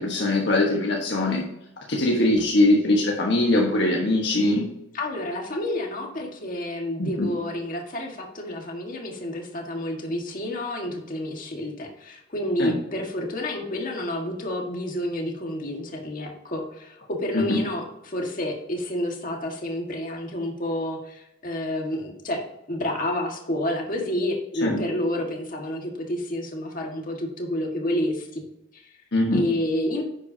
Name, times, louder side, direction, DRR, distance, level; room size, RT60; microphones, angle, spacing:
voice 1, 0.0-1.4 1.9-4.7 7.0-7.3 12.6-12.7 17.3-17.6 24.6-24.8 29.1-29.4, left 1 dB, 65° left, -1 dB, 1.4 m, -22 dB
voice 2, 4.9-22.4 22.7-28.5 28.7-29.0 29.3-30.0, left 1 dB, 45° left, 1 dB, 1.7 m, -29 dB
10.5 x 8.0 x 2.8 m, 0.84 s
head